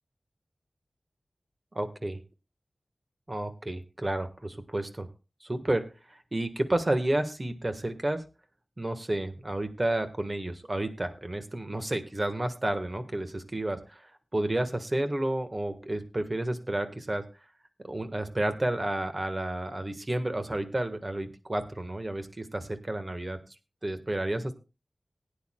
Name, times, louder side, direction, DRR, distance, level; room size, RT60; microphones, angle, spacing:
voice 1, 1.7-2.2 3.3-5.1 5.4-8.2 8.8-17.2 17.8-23.4 23.8-24.5, right 1 dB, 35° right, 8 dB, 1.5 m, -31 dB
19.5 x 9.5 x 2.3 m, 0.29 s
wide cardioid pair, 65°, 0 cm